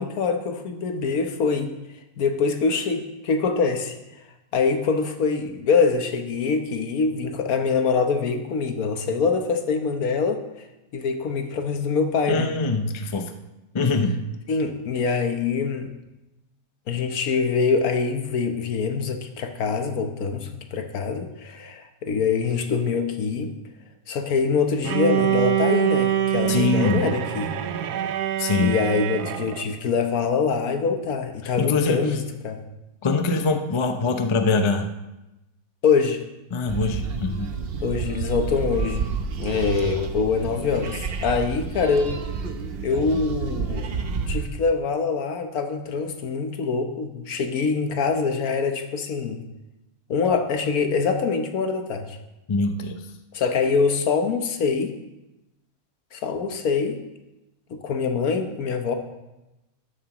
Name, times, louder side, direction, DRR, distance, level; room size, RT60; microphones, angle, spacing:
voice 1, 0.0-1.7 2.2-3.9 4.5-10.4 10.9-12.5 14.5-15.9 16.9-23.6 24.1-27.5 28.6-32.6 35.8-36.2 37.8-39.1 39.4-42.1 42.8-49.4 50.1-52.2 53.3-54.9 56.1-57.0 57.7-58.9, left 5 dB, 75° left, 6 dB, 1.4 m, -24 dB
voice 2, 12.3-13.3 13.7-14.2 26.5-27.1 28.4-28.8 31.6-32.1 33.0-34.9 36.5-37.5 52.5-53.0, left 3 dB, 35° left, 6 dB, 0.5 m, -23 dB
Bowed string instrument, 24.8-29.7, right 12 dB, 90° right, 1.2 m, -24 dB
sound 1, 36.7-44.5, right 5 dB, 50° right, 0.8 m, -30 dB
13.0 x 11.0 x 3.0 m, 0.98 s
omnidirectional pair, 1.6 m